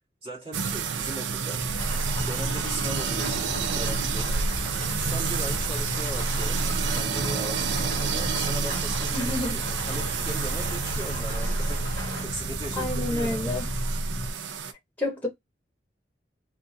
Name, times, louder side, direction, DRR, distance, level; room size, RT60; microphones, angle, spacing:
voice 1, 0.2-1.8 2.2-3.5 3.7-4.4 5.0-9.2 9.5-13.5, right 1 dB, 35° right, 2.1 m, -39 dB
sound 1, 0.5-14.7, right 6 dB, 80° right, 0.5 m, -30 dB
sound 2, 1.6-14.3, equal, 45° left, 0.5 m, -32 dB
sound 3, 1.8-12.3, equal, 60° right, 1.7 m, -39 dB
voice 2, 9.1-9.6 12.8-13.6 15.0-15.3, left 2 dB, 10° left, 1.2 m, -29 dB
3.6 x 2.5 x 2.7 m
head